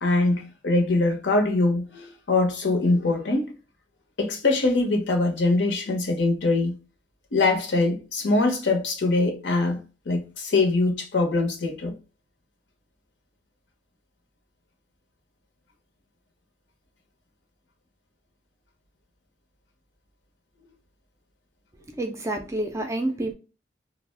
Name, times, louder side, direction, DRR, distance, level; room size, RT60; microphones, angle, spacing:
voice 1, 0.0-3.5 4.2-6.8 7.3-12.0, left 2 dB, 75° left, 0.7 m, -23 dB
voice 2, 21.9-23.3, right 1 dB, 15° right, 0.3 m, -28 dB
2.4 x 2.0 x 3.2 m
head